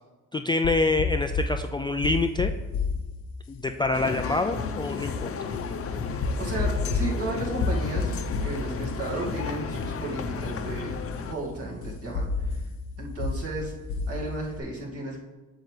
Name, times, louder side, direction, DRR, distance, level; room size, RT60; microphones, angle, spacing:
voice 1, 0.3-2.5 3.5-5.3, left 3 dB, 15° left, 5 dB, 0.3 m, -26 dB
sound 1, 0.6-14.6, left 3 dB, 85° left, 1.0 m, -32 dB
sound 2, 3.9-11.3, left 5 dB, 50° left, 0.7 m, -33 dB
voice 2, 6.4-12.6 13.0-13.7 14.1-15.2, right 2 dB, 50° right, -3 dB, 2.1 m, -34 dB
8.5 x 6.6 x 3.3 m, 1.2 s
cardioid pair, 90°, 30 cm